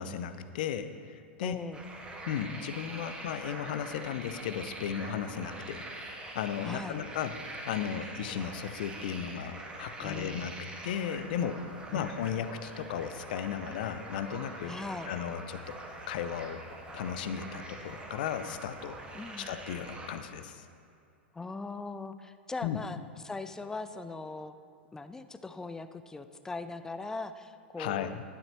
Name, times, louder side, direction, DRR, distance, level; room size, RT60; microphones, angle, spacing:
voice 1, 0.0-1.6 2.3-5.9 6.3-7.4 7.7-10.5 10.8-11.6 11.9-14.7 15.1-15.8 16.1-16.6 16.9-19.0 19.4-20.6 22.6-22.8 27.8-28.2, left 9 dB, 50° left, 11 dB, 0.6 m, -35 dB
voice 2, 1.4-1.8 6.6-7.0 10.0-10.6 11.9-12.3 14.7-15.1 19.1-19.5 21.3-23.0 23.2-24.6 24.9-28.2, left 3 dB, 10° left, 11 dB, 0.4 m, -40 dB
sound 1, 1.7-20.1, right 2 dB, 15° right, 1.6 m, -44 dB
12.0 x 11.5 x 3.0 m, 2.6 s
figure-of-eight pair, 90°, 6 cm